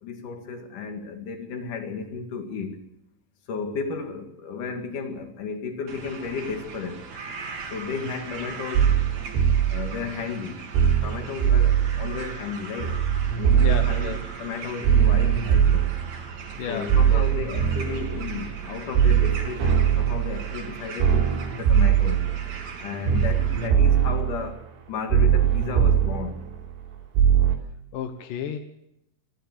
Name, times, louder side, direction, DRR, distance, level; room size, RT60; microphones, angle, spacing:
voice 1, 0.0-2.8 3.5-7.0 7.7-9.0 9.7-10.6 11.0-12.9 13.4-16.0 16.7-22.3 22.8-24.6 24.9-26.5, left 5 dB, 50° left, 3.0 m, -33 dB
sound 1, 5.9-23.7, right 4 dB, 45° right, 2.8 m, -40 dB
sound 2, 8.8-10.0 10.8-12.3 12.8-14.3 14.8-16.5 16.9-18.7 19.0-20.7 21.0-22.7 23.1-24.6 25.1-26.8 27.2-27.6, right 9 dB, 80° right, 5.2 m, -21 dB
voice 2, 13.6-14.2 16.6-17.4 27.9-28.6, left 8 dB, 75° left, 2.0 m, -32 dB
26.0 x 12.0 x 8.3 m
omnidirectional pair, 5.7 m